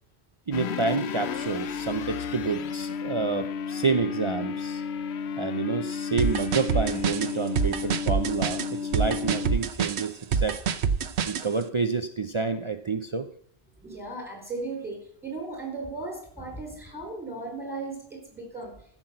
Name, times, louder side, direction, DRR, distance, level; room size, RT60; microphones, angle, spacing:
sound 1, 0.5-9.9, left 6 dB, 80° left, 0.9 m, -33 dB
voice 1, 0.5-4.8 5.4-10.6 11.2-13.3, right 4 dB, 35° right, 8 dB, 0.5 m, -29 dB
sound 2, 6.2-11.5, right 6 dB, 90° right, 1.0 m, -26 dB
voice 2, 13.8-18.7, right 3 dB, ahead, 0 dB, 4.5 m, -36 dB
14.5 x 6.0 x 7.6 m, 0.67 s
omnidirectional pair, 1.1 m